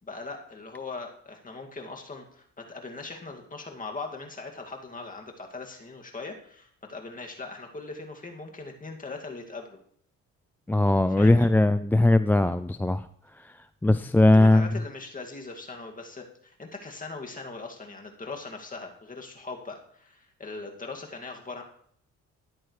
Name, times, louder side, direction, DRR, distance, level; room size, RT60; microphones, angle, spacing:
voice 1, 0.0-9.8 11.2-11.5 14.3-21.6, left 3 dB, 25° left, 2 dB, 2.2 m, -40 dB
voice 2, 10.7-13.1 13.3-14.8, left 2 dB, 5° left, 11 dB, 0.3 m, -20 dB
13.5 x 9.9 x 3.2 m, 0.63 s
cardioid pair, 90°, 30 cm